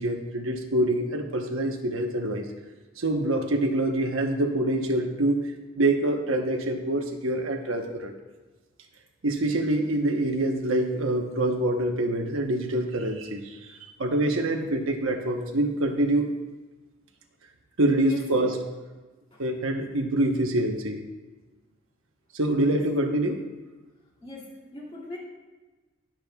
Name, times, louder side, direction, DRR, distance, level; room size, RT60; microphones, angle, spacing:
voice 1, 0.0-2.4 3.0-8.1 9.2-13.6 14.0-16.3 17.8-18.6 19.4-21.0 22.3-23.4, right 1 dB, 75° right, 3 dB, 1.1 m, -25 dB
voice 2, 18.0-18.6 19.3-19.4 22.6-22.9 24.2-25.2, left 1 dB, 25° left, -4 dB, 2.9 m, -41 dB
21.0 x 7.5 x 2.4 m, 1.2 s
head